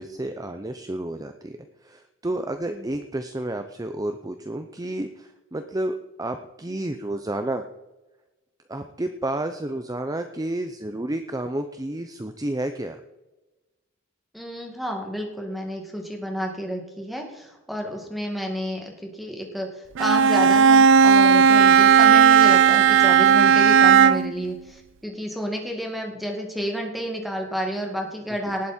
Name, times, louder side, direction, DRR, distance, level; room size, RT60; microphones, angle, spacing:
voice 1, 0.0-1.6 1.8-7.6 8.7-13.0 28.5-28.6, right 1 dB, 20° right, 7 dB, 0.7 m, -31 dB
voice 2, 14.3-28.7, equal, ahead, 1 dB, 2.2 m, -30 dB
Bowed string instrument, 20.0-24.4, right 7 dB, 65° right, 0.4 m, -15 dB
19.0 x 8.3 x 4.4 m, 1.1 s
head